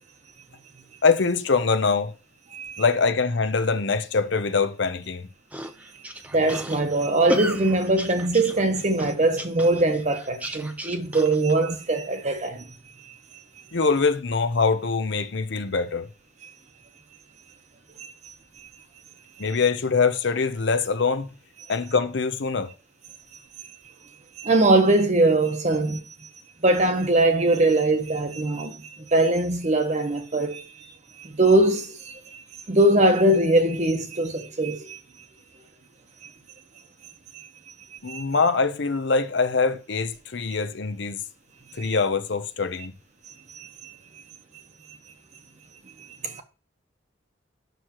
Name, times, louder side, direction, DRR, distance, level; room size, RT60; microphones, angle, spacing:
voice 1, 1.0-2.1 2.8-5.3 13.7-16.1 19.4-21.3 21.7-22.7 38.0-41.2 41.8-42.9, left 4 dB, 60° left, 0.7 m, -23 dB
voice 2, 2.5-2.8 6.3-12.7 18.0-18.1 24.4-26.0 26.6-30.6 31.2-32.4 32.7-35.0 38.1-38.2 41.8-41.9 43.5-43.9 46.2-46.4, right 2 dB, 35° right, 1.0 m, -22 dB
sound 1, 5.5-11.5, equal, 10° right, 0.6 m, -33 dB
9.1 x 6.3 x 3.0 m
head